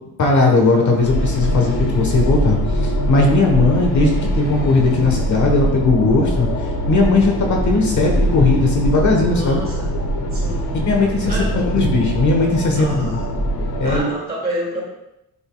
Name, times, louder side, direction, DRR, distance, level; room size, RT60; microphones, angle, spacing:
voice 1, 0.2-6.5 6.9-9.6 10.9-13.2 13.8-14.1, left 3 dB, 50° left, 1 dB, 1.2 m, -17 dB
sound 1, 1.0-14.0, equal, 75° left, 1.1 m, -22 dB
voice 2, 9.3-9.9 10.3-10.8 11.2-11.7 12.8-13.3 13.8-14.8, right 1 dB, 25° right, -4 dB, 2.2 m, -29 dB
11.0 x 5.2 x 2.3 m, 0.87 s
wide cardioid pair, 180°, 38 cm